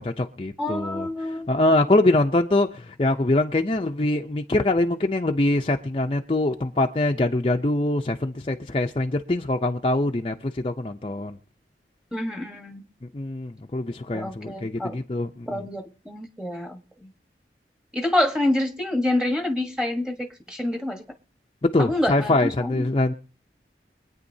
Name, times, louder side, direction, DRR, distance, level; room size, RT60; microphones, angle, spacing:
voice 1, 0.0-11.4 13.1-15.7 21.6-23.1, left 2 dB, 30° left, 0.5 m, -24 dB
voice 2, 0.6-1.5 12.1-12.8 14.1-15.0 15.5-17.1 17.9-21.0 21.8-22.9, left 1 dB, 5° right, 1.2 m, -27 dB
24.5 x 9.2 x 2.7 m
head